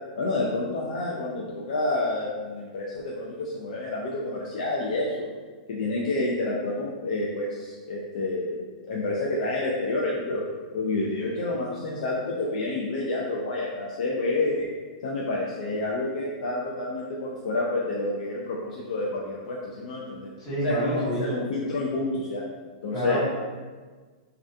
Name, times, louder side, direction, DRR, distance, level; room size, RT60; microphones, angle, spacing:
voice 1, 0.2-5.3 5.7-8.6 8.8-10.4 10.7-14.7 15.0-20.3 20.6-22.4 22.8-23.2, left 2 dB, 65° left, -4 dB, 0.4 m, -29 dB
voice 2, 20.4-21.2 22.9-23.2, right 1 dB, 40° left, -9 dB, 1.2 m, -29 dB
2.3 x 2.2 x 2.6 m, 1.4 s
hypercardioid pair, 155°, 4 cm